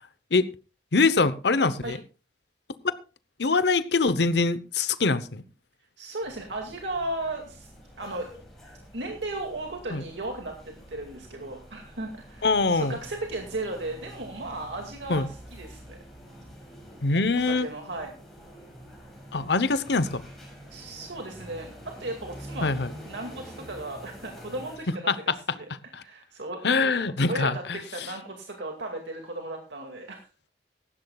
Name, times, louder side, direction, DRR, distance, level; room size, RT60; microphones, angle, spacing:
voice 1, 0.9-2.0 3.4-5.4 9.9-10.0 12.4-13.0 15.1-15.3 17.0-17.7 19.3-20.2 22.6-22.9 25.1-25.3 25.9-26.0 26.6-28.1, left 3 dB, 70° left, 0.9 m, -24 dB
voice 2, 6.0-7.7 8.0-8.3 8.9-16.0 17.3-18.1 20.7-26.9 27.3-30.2, right 2 dB, 85° right, 2.2 m, -36 dB
sound 1, 6.2-24.8, equal, ahead, 6.2 m, -47 dB
17.5 x 15.0 x 2.4 m
head